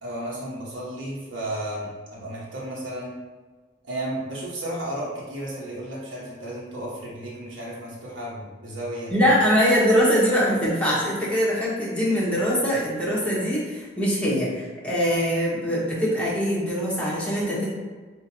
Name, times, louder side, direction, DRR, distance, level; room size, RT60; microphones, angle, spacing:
voice 1, 0.0-3.1 3.8-9.3, right 1 dB, 80° right, -6 dB, 1.1 m, -33 dB
voice 2, 9.1-17.7, equal, 5° left, -7 dB, 1.0 m, -22 dB
5.5 x 2.5 x 2.7 m, 1.4 s
head